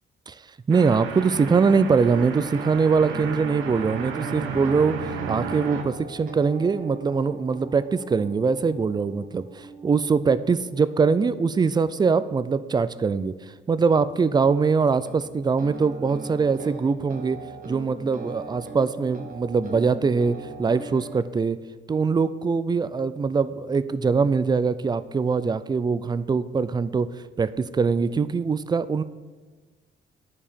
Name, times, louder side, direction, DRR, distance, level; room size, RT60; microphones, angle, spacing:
voice 1, 0.7-5.0 5.3-21.6 21.9-29.0, right 5 dB, 20° right, 15 dB, 0.4 m, -23 dB
sound 1, 0.7-5.8, right 6 dB, 90° right, 0.8 m, -33 dB
sound 2, 2.0-13.9 15.0-21.2, right 2 dB, 45° right, 1.4 m, -41 dB
10.0 x 4.7 x 5.2 m, 1.3 s
cardioid pair, 90°, 20 cm